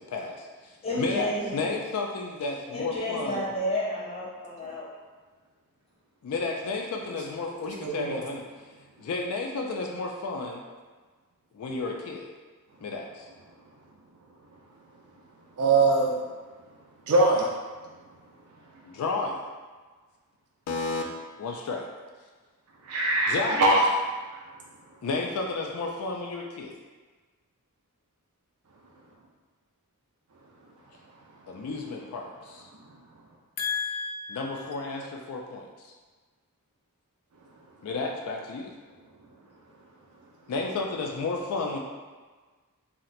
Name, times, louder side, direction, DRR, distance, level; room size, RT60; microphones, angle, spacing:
voice 1, 0.1-3.4 6.2-8.4 9.0-10.6 11.5-12.3 12.8-13.3 18.8-19.4 20.7-21.0 21.4-21.9 23.3-23.6 25.0-26.8 31.5-32.7 33.6-35.9 37.8-38.7 40.5-41.8, left 3 dB, 75° left, 1 dB, 0.3 m, -32 dB
voice 2, 0.8-1.6 2.7-4.9, left 1 dB, 30° left, -6 dB, 0.8 m, -31 dB
voice 3, 7.8-8.2 15.6-16.2 17.1-17.5 22.9-23.8, right 2 dB, 80° right, -2 dB, 0.5 m, -22 dB
2.8 x 2.1 x 3.9 m, 1.4 s
head